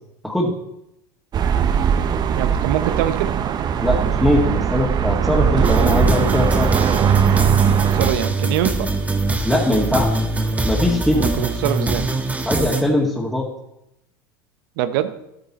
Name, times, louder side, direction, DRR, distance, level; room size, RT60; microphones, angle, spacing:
sound 1, 1.3-8.1, right 8 dB, 35° right, 0.9 m, -19 dB
voice 1, 2.3-3.4 7.9-8.9 11.1-12.1 14.8-15.2, right 12 dB, 70° right, 12 dB, 0.9 m, -23 dB
voice 2, 3.8-6.7 9.4-10.2 10.6-11.2 12.5-13.5, left 1 dB, 5° left, -6 dB, 2.1 m, -20 dB
sound 2, 5.6-12.8, right 2 dB, 10° right, 1.4 m, -23 dB
13.0 x 9.4 x 4.3 m, 0.85 s
hypercardioid pair, 95°, 12 cm